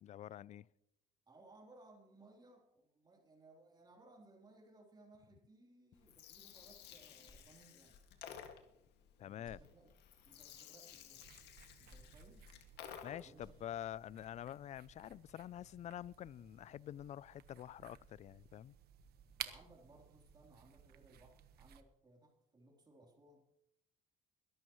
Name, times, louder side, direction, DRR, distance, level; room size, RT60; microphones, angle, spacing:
voice 1, 0.0-0.7 9.2-9.6 13.0-18.8, left 11 dB, 45° left, 0.4 m, -47 dB
voice 2, 1.3-8.0 9.2-9.9 10.2-11.2 11.8-12.5 13.1-13.6 19.4-23.4, right 2 dB, 25° right, 3.4 m, -63 dB
Gurgling, 5.9-13.4, left 8 dB, 80° left, 2.0 m, -55 dB
sound 1, 7.2-8.1 8.6-8.7 9.3-10.4 11.9-13.0 13.2-14.2, left 1 dB, 25° left, 4.3 m, -64 dB
sound 2, 11.2-21.8, right 10 dB, 70° right, 1.3 m, -55 dB
22.0 x 12.0 x 3.1 m
cardioid pair, 110°, 17 cm